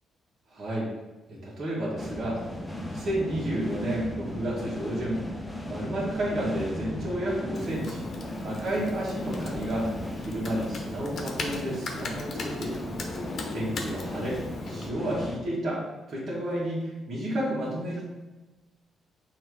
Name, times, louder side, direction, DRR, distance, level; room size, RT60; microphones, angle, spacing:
voice 1, 0.5-0.9 1.3-2.4 2.7-5.2 5.7-8.0 8.4-9.9 10.2-12.8 13.5-14.4 14.7-15.8 16.1-18.0, right 1 dB, 50° right, -7 dB, 2.1 m, -31 dB
sound 1, 2.0-15.4, left 1 dB, 10° left, 0.9 m, -37 dB
Computer keyboard, 7.5-14.9, left 2 dB, 55° left, 1.0 m, -38 dB
6.2 x 3.3 x 4.9 m, 1.2 s
cardioid pair, 90°, 0 cm